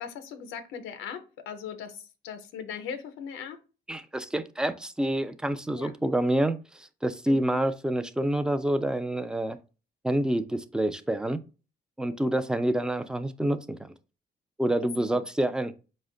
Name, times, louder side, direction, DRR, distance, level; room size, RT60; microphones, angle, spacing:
voice 1, 0.0-3.6 5.8-5.9 7.3-7.6 12.1-12.3 15.0-15.2, left 7 dB, 90° left, 8 dB, 0.6 m, -39 dB
voice 2, 3.9-9.6 10.0-11.4 12.0-13.9 14.6-15.7, right 1 dB, 5° right, 11 dB, 0.3 m, -27 dB
4.8 x 2.1 x 3.7 m, 0.33 s
cardioid pair, 90°, 20 cm